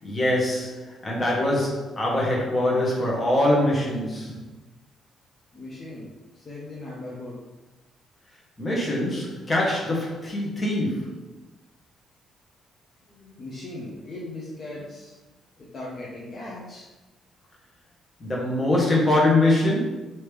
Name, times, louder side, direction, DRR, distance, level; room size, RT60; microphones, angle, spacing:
voice 1, 0.0-4.4 8.6-11.1 18.2-19.8, left 1 dB, 25° left, -4 dB, 1.2 m, -23 dB
voice 2, 5.5-6.1 6.3-7.4 13.1-15.2 15.6-16.9, left 2 dB, 45° left, -5 dB, 0.8 m, -38 dB
3.2 x 2.8 x 3.4 m, 1.1 s
cardioid pair, 90°, 0 cm